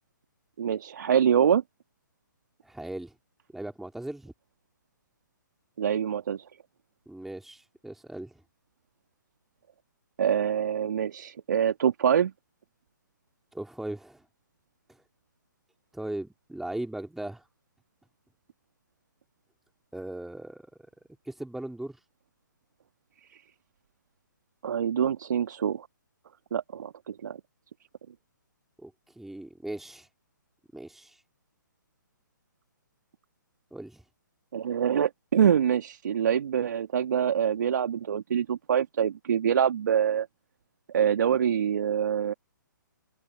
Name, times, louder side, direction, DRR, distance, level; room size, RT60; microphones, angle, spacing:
voice 1, 0.6-1.6 5.8-6.4 10.2-12.3 23.3-23.4 24.6-25.9 26.5-27.4 34.5-40.3 40.9-42.3, right 8 dB, 60° right, 1.6 m, -25 dB
voice 2, 2.6-3.1 3.5-4.3 7.1-8.3 13.5-14.2 15.9-17.4 19.9-20.7 21.2-22.0 28.8-30.1 30.7-31.2 33.7-34.0, right 1 dB, ahead, 3.0 m, -38 dB
open air
hypercardioid pair, 135°, 11 cm